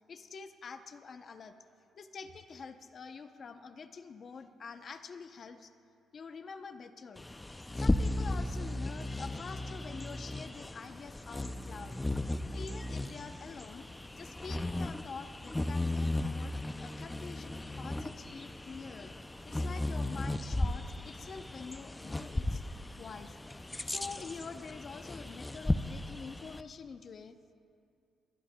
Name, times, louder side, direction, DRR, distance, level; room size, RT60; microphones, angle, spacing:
voice 1, 0.1-1.5 1.9-5.7 6.1-7.2 7.7-12.0 12.5-13.9 14.2-19.1 19.4-22.6 23.0-23.4 23.8-27.5, left 5 dB, 50° left, 9 dB, 0.7 m, -46 dB
Bird vocalization bird call bird song, 7.2-26.6, left 1 dB, 15° left, 0.4 m, -36 dB
21.0 x 18.5 x 2.2 m, 2.5 s
cardioid pair, 90°, 0 cm